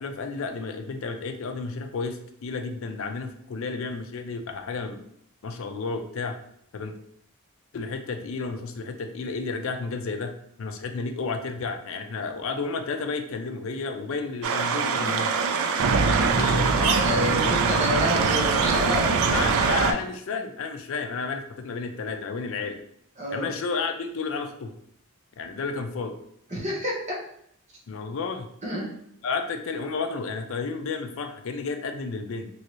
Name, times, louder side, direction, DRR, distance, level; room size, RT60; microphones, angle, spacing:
voice 1, 0.0-5.1 5.4-6.4 6.7-6.9 7.7-10.3 10.6-15.3 16.0-17.0 17.3-17.6 19.3-22.8 23.3-24.7 25.4-26.1 27.9-28.5 29.2-32.5, left 4 dB, 70° left, 6 dB, 0.4 m, -32 dB
sound 1, 14.4-19.9, right 5 dB, 80° right, 0.4 m, -22 dB
voice 2, 17.0-19.3 23.2-23.5 26.5-27.2 28.6-28.9, left 1 dB, 30° right, -3 dB, 0.9 m, -29 dB
3.1 x 2.6 x 2.9 m, 0.69 s
head